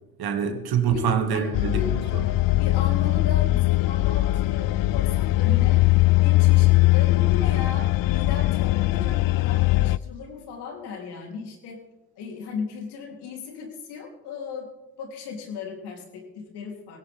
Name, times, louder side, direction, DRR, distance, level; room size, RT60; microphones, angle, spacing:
voice 1, 0.2-2.2, right 7 dB, 65° right, 5 dB, 2.3 m, -25 dB
voice 2, 0.9-1.9 2.6-5.8 6.2-11.8 12.2-14.7 15.0-17.0, left 5 dB, 75° left, 0 dB, 3.8 m, -36 dB
sound 1, 1.5-10.0, left 18 dB, 60° left, 0.5 m, -20 dB
18.0 x 17.5 x 3.7 m, 1.0 s
hypercardioid pair, 55°, 39 cm